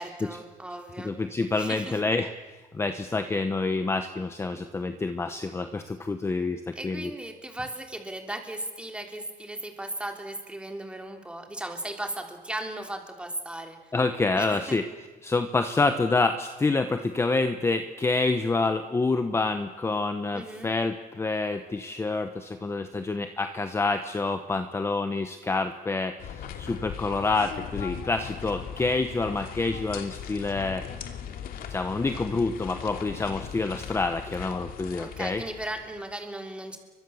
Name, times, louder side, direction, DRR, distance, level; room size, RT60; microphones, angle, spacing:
voice 1, 0.0-1.1 1.5-2.0 6.7-13.9 14.3-14.8 20.3-20.7 35.0-36.8, right 1 dB, 5° right, 4 dB, 3.4 m, -37 dB
voice 2, 1.0-2.3 2.7-7.1 13.9-14.9 15.2-30.8 31.7-35.4, left 3 dB, 15° left, 8 dB, 1.1 m, -27 dB
sound 1, 26.2-36.1, left 8 dB, 80° left, 2.6 m, -39 dB
30.0 x 24.0 x 7.2 m, 1.2 s
cardioid pair, 160°, 15 cm